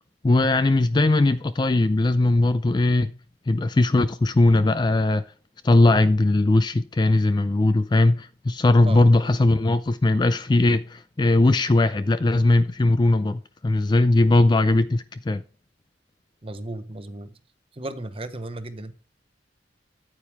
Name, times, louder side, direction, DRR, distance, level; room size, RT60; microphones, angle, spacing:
voice 1, 0.2-3.1 3.5-5.2 5.6-15.4, left 2 dB, 25° left, 0.3 m, -19 dB
voice 2, 16.4-17.4 17.7-18.9, right 1 dB, 30° right, 0.8 m, -35 dB
9.2 x 8.8 x 3.5 m
head